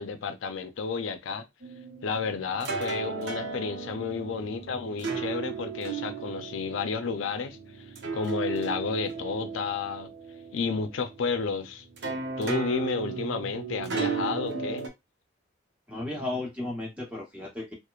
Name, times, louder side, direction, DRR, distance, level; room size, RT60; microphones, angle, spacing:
voice 1, 0.0-1.5 2.0-10.1 10.5-11.8 12.4-14.9, left 5 dB, 90° left, 0.4 m, -31 dB
sound 1, 1.6-14.9, right 5 dB, 60° right, 0.6 m, -35 dB
voice 2, 15.9-17.7, left 2 dB, 5° right, 0.9 m, -34 dB
2.9 x 2.0 x 2.3 m
head